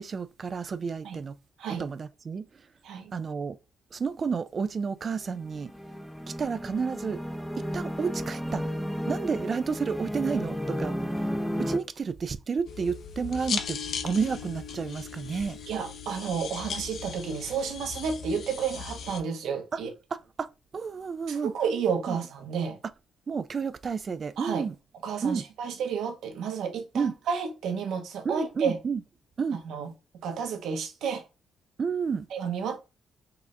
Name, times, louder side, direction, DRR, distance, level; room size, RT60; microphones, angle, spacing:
voice 1, 0.0-1.4 1.8-2.5 3.1-3.6 3.9-5.7 6.3-7.2 7.7-8.7 9.1-11.3 11.6-15.6 19.7-19.8 20.1-20.5 20.7-21.5 22.1-22.2 23.3-24.8 25.2-25.4 26.9-27.1 28.2-29.0 29.4-29.6 31.8-32.3, right 5 dB, 40° right, 0.3 m, -31 dB
sound 1, 5.2-11.8, equal, ahead, 0.6 m, -33 dB
sound 2, 12.7-19.2, left 6 dB, 65° left, 0.6 m, -37 dB
voice 2, 15.7-19.9 21.3-22.8 24.4-24.6 25.0-28.8 29.6-29.9 30.2-31.2 32.3-32.8, right 6 dB, 80° right, 1.0 m, -31 dB
4.7 x 2.5 x 3.3 m
cardioid pair, 90°, 0 cm